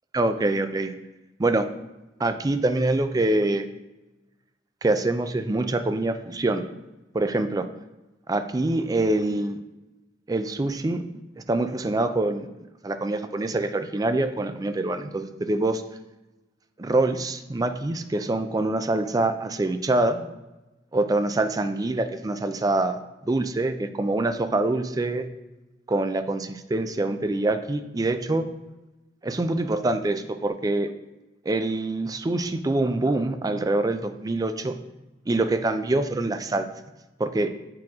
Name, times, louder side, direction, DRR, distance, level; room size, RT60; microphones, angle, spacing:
voice 1, 0.1-0.9 1.4-1.7 2.2-3.7 4.8-6.6 7.1-7.7 8.3-9.6 10.3-11.0 11.5-12.4 12.8-15.8 16.8-20.2 20.9-23.0 23.2-25.3 25.9-28.5 29.2-30.9 31.5-34.8 35.3-36.7 37.2-37.5, right 2 dB, 20° right, 9 dB, 0.4 m, -25 dB
7.6 x 4.8 x 3.6 m, 1.0 s
head